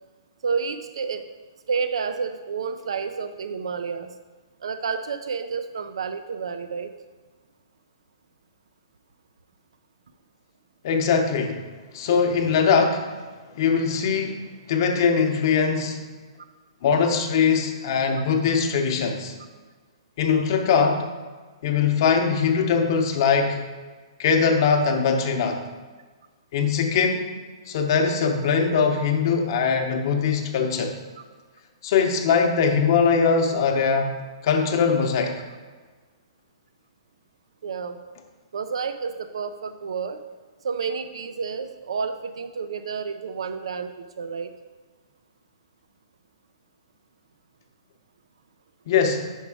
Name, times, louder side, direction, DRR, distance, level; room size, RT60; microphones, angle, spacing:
voice 1, 0.4-1.3 1.7-4.1 4.6-6.9 31.2-31.3 37.6-38.0 38.5-40.2 40.6-44.5, right 5 dB, 85° right, 9 dB, 0.4 m, -30 dB
voice 2, 10.8-11.6 11.9-13.1 13.6-14.4 14.7-16.0 16.8-19.3 20.2-21.1 21.6-23.6 24.2-25.6 26.5-27.3 27.7-31.0 31.8-34.1 34.4-35.3 48.9-49.2, left 6 dB, 50° left, 4 dB, 0.8 m, -21 dB
5.4 x 4.9 x 4.8 m, 1.4 s
hypercardioid pair, 155°, 3 cm